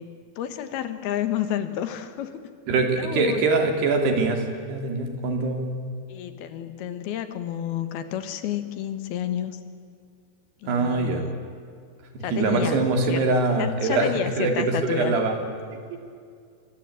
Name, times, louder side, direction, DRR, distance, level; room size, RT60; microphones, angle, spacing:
voice 1, 0.0-2.4 2.8-3.5 6.1-9.6 10.6-11.4 12.2-15.1, left 10 dB, 75° left, 10 dB, 3.2 m, -30 dB
voice 2, 2.7-4.4 4.7-5.7 10.7-11.2 12.1-14.1 14.4-15.3, right 3 dB, 85° right, 4 dB, 5.0 m, -23 dB
26.0 x 25.5 x 8.7 m, 2.2 s
omnidirectional pair, 4.6 m